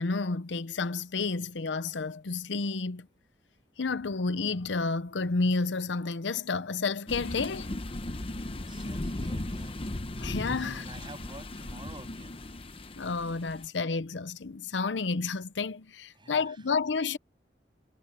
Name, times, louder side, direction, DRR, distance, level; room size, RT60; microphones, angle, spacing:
voice 1, 0.0-3.1 3.8-7.7 10.2-10.8 13.0-17.2, left 4 dB, 80° left, 0.7 m, -30 dB
sound 1, 7.1-13.7, left 1 dB, 30° left, 0.9 m, -37 dB
voice 2, 8.6-9.9 10.2-12.4 16.1-16.6, right 2 dB, 25° right, 7.4 m, -49 dB
head